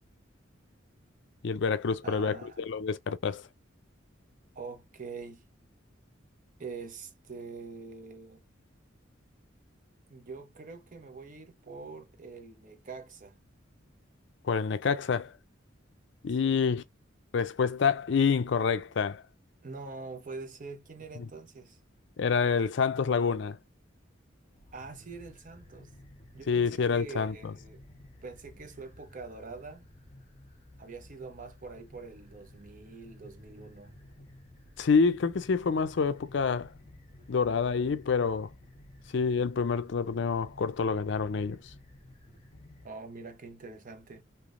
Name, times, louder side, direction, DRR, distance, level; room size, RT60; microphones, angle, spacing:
voice 1, 1.4-3.4 14.4-15.3 16.2-16.8 17.3-19.2 21.2-21.3 22.2-23.6 26.5-27.5 34.8-36.7 37.3-38.5 39.1-41.6, left 5 dB, 65° left, 0.5 m, -27 dB
voice 2, 2.0-2.6 4.6-5.4 6.6-8.4 10.1-13.4 16.3-16.6 19.6-21.8 24.7-25.9 26.3-27.8 28.2-29.9 30.8-33.9 42.8-44.2, right 4 dB, 45° right, 0.7 m, -44 dB
sound 1, 24.5-42.9, left 1 dB, 30° left, 1.0 m, -54 dB
3.4 x 2.8 x 2.5 m
head